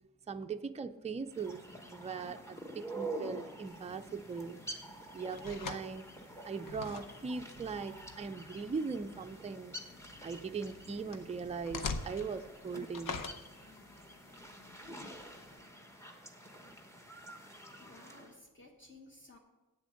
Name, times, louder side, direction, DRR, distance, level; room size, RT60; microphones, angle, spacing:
voice 1, 0.3-1.6 1.9-4.6 5.1-6.1 6.4-9.8 10.2-13.2, right 5 dB, 20° right, 7 dB, 0.4 m, -40 dB
sound 1, 1.3-18.3, right 1 dB, 10° left, 1.0 m, -48 dB
sound 2, 3.7-15.6, left 4 dB, 70° left, 0.8 m, -47 dB
voice 2, 17.8-19.4, left 2 dB, 35° left, 1 dB, 1.2 m, -56 dB
8.4 x 7.0 x 6.3 m, 1.1 s
wide cardioid pair, 145°, 34 cm